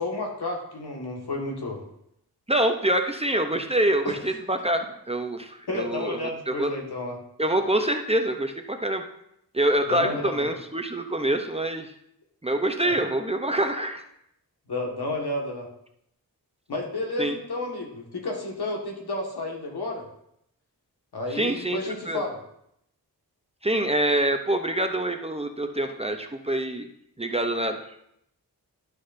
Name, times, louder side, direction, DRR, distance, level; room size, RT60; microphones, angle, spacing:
voice 1, 0.0-1.8 4.0-4.2 5.7-7.2 9.9-10.5 12.8-12.9 14.7-15.7 16.7-20.0 21.1-22.4, left 2 dB, 80° left, 0 dB, 1.7 m, -31 dB
voice 2, 2.5-6.2 6.5-6.7 7.4-9.0 9.5-11.9 12.4-14.0 17.2-17.3 21.3-21.8 22.1-22.2 23.6-26.9 27.2-27.8, right 1 dB, 15° right, 5 dB, 0.6 m, -25 dB
11.5 x 6.3 x 2.6 m, 0.75 s
wide cardioid pair, 115°, 38 cm